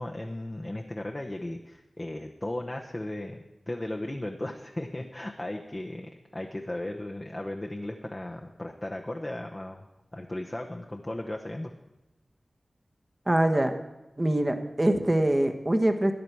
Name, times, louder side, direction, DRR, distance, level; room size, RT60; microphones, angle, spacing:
voice 1, 0.0-9.8 10.1-11.7, left 1 dB, 30° left, 1 dB, 0.9 m, -36 dB
voice 2, 13.3-13.7 14.2-16.1, right 1 dB, 30° right, 6 dB, 1.2 m, -24 dB
14.0 x 9.7 x 4.6 m, 0.98 s
cardioid pair, 45°, 0 cm